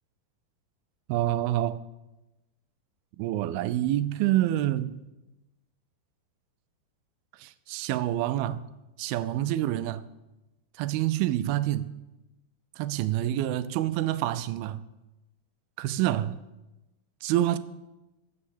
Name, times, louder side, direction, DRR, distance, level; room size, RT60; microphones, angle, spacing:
voice 1, 1.1-1.8 3.2-5.0 7.4-8.6 9.0-10.0 10.8-11.9 12.8-14.8 15.8-16.4 17.2-17.6, right 13 dB, 80° right, 2.3 m, -27 dB
14.5 x 7.0 x 7.3 m
omnidirectional pair, 4.5 m